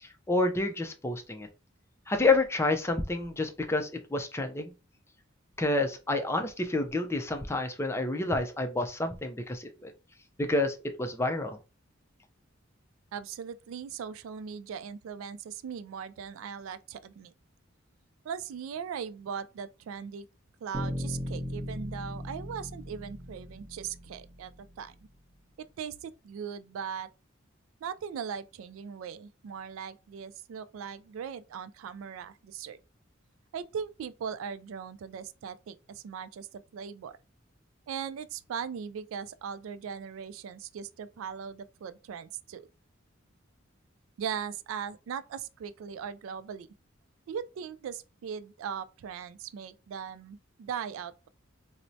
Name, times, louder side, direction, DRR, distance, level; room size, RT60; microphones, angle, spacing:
voice 1, 0.0-1.5 2.1-4.7 5.6-9.9 10.4-11.6, left 2 dB, 15° left, 0.4 m, -29 dB
voice 2, 13.1-17.3 18.2-20.3 20.6-24.5 24.8-24.9 25.8-27.1 27.8-32.8 33.5-36.5 36.7-37.2 37.9-42.7 44.2-46.7 47.3-51.3, right 7 dB, 75° right, 0.3 m, -39 dB
sound 1, 20.7-24.8, equal, 20° right, 1.1 m, -38 dB
4.3 x 2.0 x 2.6 m
head